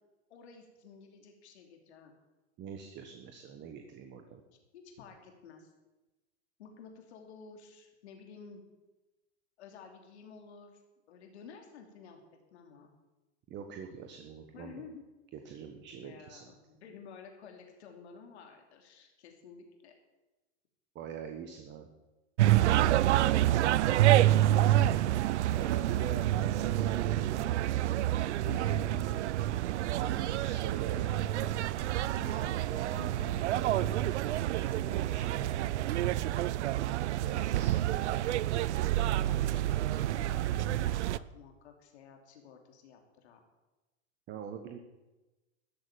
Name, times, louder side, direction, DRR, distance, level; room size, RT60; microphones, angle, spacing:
voice 1, 0.3-2.1 4.7-5.7 6.6-8.6 9.6-10.8 11.1-12.2 12.5-12.9 14.5-15.0 15.9-19.9 22.8-24.7 25.5-25.8 27.1-27.4 28.4-28.8 32.2-32.6 32.9-33.4 39.0-43.4, left 6 dB, 70° left, 3 dB, 3.2 m, -51 dB
voice 2, 2.6-4.4 13.5-14.8 15.3-16.5 20.9-21.9 25.5-29.4 29.9-31.1 32.4-34.1 34.4-35.8 36.0-36.6 36.9-37.8 44.3-44.8, right 7 dB, 30° right, 5 dB, 1.4 m, -44 dB
sound 1, 22.4-41.2, right 13 dB, 80° right, 0.6 m, -28 dB
13.5 x 6.6 x 9.3 m, 1.1 s
hypercardioid pair, 125°, 34 cm